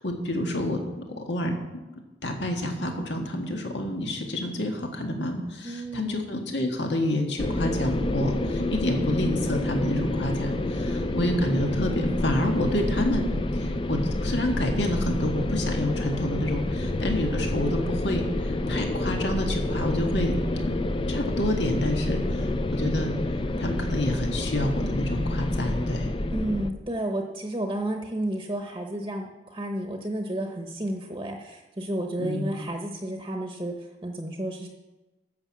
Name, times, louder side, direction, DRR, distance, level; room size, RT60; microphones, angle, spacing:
voice 1, 0.0-1.5 2.2-20.7 21.1-23.1 23.6-26.1 32.2-32.5, left 1 dB, 80° left, 2 dB, 1.7 m, -28 dB
voice 2, 5.6-6.2 26.3-34.7, right 1 dB, 25° right, 3 dB, 0.9 m, -31 dB
sound 1, 7.4-26.7, left 1 dB, 30° left, 0.5 m, -28 dB
11.5 x 6.4 x 7.5 m, 1.1 s
head